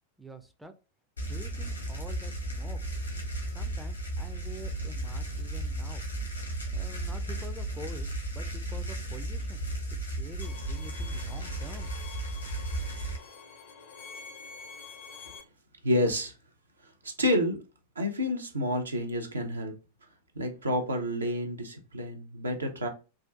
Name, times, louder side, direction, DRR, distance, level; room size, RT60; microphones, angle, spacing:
voice 1, 0.2-0.7 1.2-2.8 3.5-6.0 6.7-9.6 10.2-11.9, right 1 dB, 5° right, 0.4 m, -47 dB
sound 1, 1.2-13.2, right 1 dB, 85° left, 1.1 m, -34 dB
Bowed string instrument, 10.4-15.4, left 5 dB, 50° left, 0.5 m, -47 dB
voice 2, 15.8-16.3 16.8-17.6 18.0-19.7 20.3-22.9, left 1 dB, 75° right, 0.6 m, -29 dB
3.6 x 2.4 x 2.3 m
figure-of-eight pair, 90°, 0 cm